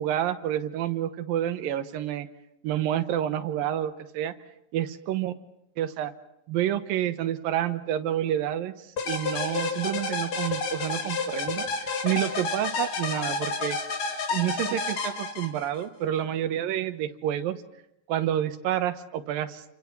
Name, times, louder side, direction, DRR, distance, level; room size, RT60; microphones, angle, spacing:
voice 1, 0.0-2.3 2.6-4.3 4.7-5.3 5.8-6.1 6.5-8.7 9.1-13.8 14.3-17.6 18.1-19.6, right 11 dB, 75° right, 11 dB, 2.8 m, -29 dB
sound 1, 9.0-15.8, left 4 dB, 50° left, 3.3 m, -30 dB
29.0 x 26.0 x 6.0 m, 0.82 s
omnidirectional pair, 4.1 m